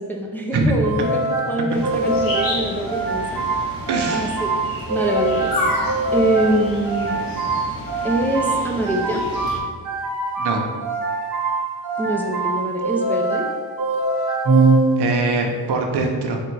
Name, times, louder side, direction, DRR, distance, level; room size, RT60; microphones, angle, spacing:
voice 1, 0.0-3.5 3.8-4.5 4.9-5.5 6.1-7.2 8.0-9.2 12.0-13.5, right 1 dB, 5° left, -2 dB, 0.5 m, -24 dB
sound 1, 0.8-15.4, right 2 dB, 50° right, 1.1 m, -23 dB
sound 2, 1.7-9.6, left 1 dB, 55° left, 1.1 m, -30 dB
voice 2, 3.9-4.3 10.4-10.6 15.0-16.4, right 3 dB, 65° right, 2 dB, 0.8 m, -22 dB
4.4 x 2.5 x 4.5 m, 1.5 s
cardioid pair, 80°, 42 cm